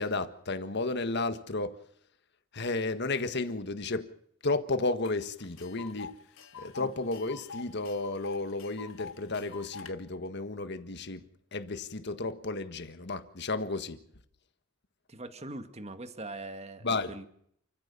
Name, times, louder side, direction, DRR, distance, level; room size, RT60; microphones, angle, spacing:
voice 1, 0.0-1.8 2.5-4.1 4.4-6.2 6.6-11.2 11.5-14.0 16.8-17.1, left 3 dB, 60° left, 1.6 m, -33 dB
Tick, 5.0-5.1 5.4-9.9, left 5 dB, 85° left, 2.2 m, -46 dB
voice 2, 15.1-17.3, right 2 dB, 35° right, 1.9 m, -42 dB
29.0 x 15.0 x 7.2 m
head